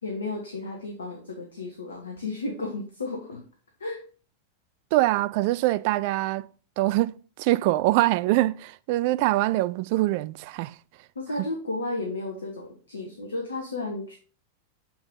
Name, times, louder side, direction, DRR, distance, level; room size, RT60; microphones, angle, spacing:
voice 1, 0.0-3.4 3.8-4.0 11.1-14.2, left 2 dB, 70° left, 1.3 m, -33 dB
voice 2, 4.9-6.5 6.8-10.8, right 17 dB, 45° right, 0.3 m, -24 dB
6.8 x 6.0 x 3.8 m
figure-of-eight pair, 90°, 0 cm